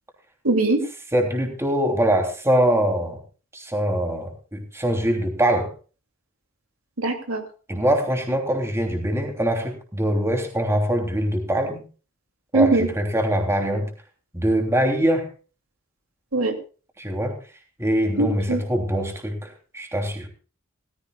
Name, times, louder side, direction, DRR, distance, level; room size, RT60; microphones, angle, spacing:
voice 1, 0.4-0.8 7.0-7.4 12.5-12.9 16.3-16.5 18.2-18.6, right 2 dB, 85° right, 5 dB, 2.7 m, -21 dB
voice 2, 1.1-3.2 3.5-5.7 7.7-11.8 12.5-13.9 14.3-15.3 17.0-17.3 17.8-19.5 19.7-20.3, right 1 dB, 15° right, 3 dB, 3.1 m, -23 dB
17.5 x 15.0 x 2.4 m, 0.36 s
head